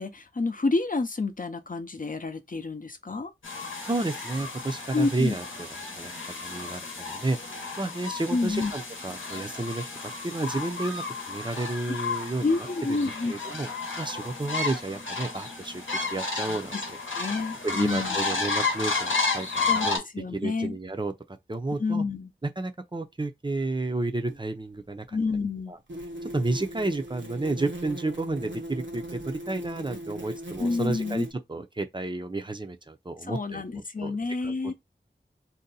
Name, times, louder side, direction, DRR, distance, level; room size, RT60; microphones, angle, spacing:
voice 1, 0.0-3.3 4.9-5.4 8.3-8.7 11.9-12.0 12.4-13.3 16.5-16.8 17.2-18.2 19.7-19.9 20.1-20.8 21.8-22.3 25.1-25.7 30.6-31.2 33.2-34.7, left 3 dB, 45° left, 0.6 m, -29 dB
sound 1, 3.4-20.0, left 4 dB, 85° left, 0.9 m, -32 dB
voice 2, 3.8-5.7 5.9-6.1 6.4-7.4 7.8-9.9 10.2-12.5 12.9-13.0 13.3-13.7 14.0-17.0 17.6-20.0 20.3-21.1 21.5-22.0 22.6-25.2 25.7-25.8 26.2-33.6 34.0-34.2 34.4-34.5, right 2 dB, 25° right, 0.5 m, -31 dB
sound 2, 24.3-24.4 25.9-31.3, equal, 70° right, 0.8 m, -39 dB
2.7 x 2.2 x 4.0 m
wide cardioid pair, 45°, 20 cm